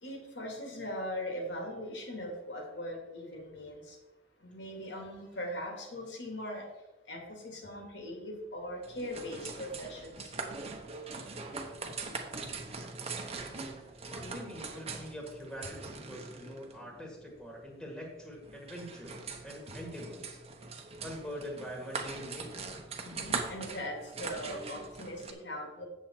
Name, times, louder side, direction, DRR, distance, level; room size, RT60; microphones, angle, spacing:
voice 1, 0.0-4.0 4.4-6.7 7.1-10.3 23.0-25.9, left 1 dB, 65° left, 1 dB, 2.2 m, -40 dB
sound 1, 8.8-25.3, right 4 dB, 35° right, 1.0 m, -42 dB
voice 2, 14.1-20.4 21.0-22.6, equal, 5° left, 0 dB, 1.7 m, -44 dB
8.3 x 7.2 x 4.4 m, 1.1 s
head